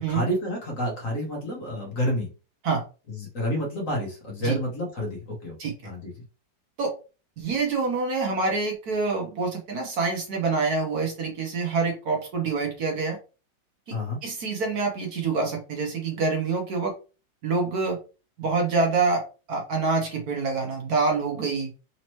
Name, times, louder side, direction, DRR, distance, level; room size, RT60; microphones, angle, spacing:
voice 1, 0.1-2.3 3.1-5.6 5.8-6.1 13.9-14.2, equal, 50° left, 0 dB, 1.4 m, -29 dB
voice 2, 7.4-13.2 14.2-16.9 17.4-18.0 18.4-21.7, right 4 dB, 60° right, 1 dB, 1.3 m, -26 dB
4.1 x 2.9 x 3.0 m, 0.33 s
omnidirectional pair, 2.1 m